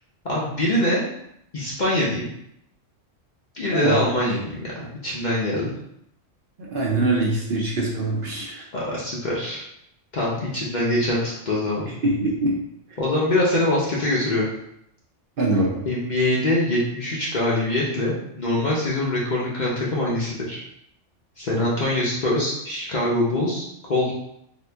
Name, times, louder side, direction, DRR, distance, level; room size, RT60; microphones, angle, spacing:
voice 1, 0.2-1.0 1.5-2.3 3.5-5.7 8.7-9.6 10.1-11.9 13.0-14.5 15.9-20.6 21.4-24.1, left 1 dB, 45° left, -6 dB, 0.6 m, -24 dB
voice 2, 3.7-4.0 6.7-8.6 11.9-12.5 12.9-13.0 15.4-15.8, right 2 dB, 55° right, -4 dB, 0.7 m, -23 dB
2.9 x 2.5 x 3.3 m, 0.76 s
omnidirectional pair, 1.3 m